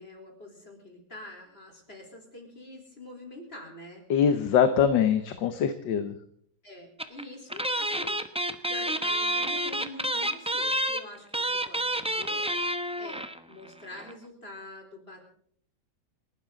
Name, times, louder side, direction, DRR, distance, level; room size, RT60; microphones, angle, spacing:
voice 1, 0.0-4.0 6.6-8.3 8.7-12.5 13.0-15.2, left 1 dB, 30° left, 2 dB, 4.3 m, -46 dB
voice 2, 4.1-6.1, left 8 dB, 65° left, 9 dB, 1.7 m, -23 dB
sound 1, 7.0-7.2 7.5-13.4 13.7-13.8 13.9-14.1, right 1 dB, 10° right, 0.3 m, -29 dB
28.5 x 12.5 x 3.9 m, 0.64 s
omnidirectional pair, 2.2 m